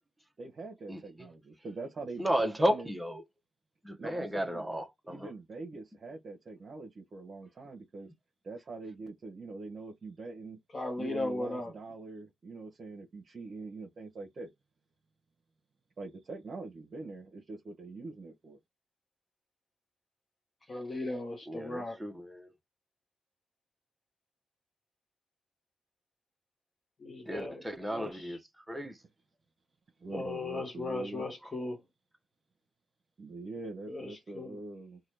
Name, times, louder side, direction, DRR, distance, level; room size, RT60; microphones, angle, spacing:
voice 1, 0.4-2.9 4.0-4.7 5.0-8.1 8.4-10.6 11.0-14.5 16.0-18.6 30.0-31.3 33.2-35.0, right 3 dB, 50° right, 0.8 m, -44 dB
voice 2, 2.2-3.2 3.8-5.3 21.5-22.5 27.3-28.4 28.7-29.0, equal, 10° right, 0.7 m, -33 dB
voice 3, 10.7-11.7 20.7-22.0 27.0-27.6 27.9-28.4 30.1-31.8 33.9-34.6, left 2 dB, 40° left, 0.9 m, -37 dB
2.9 x 2.2 x 3.3 m
cardioid pair, 65°, 0 cm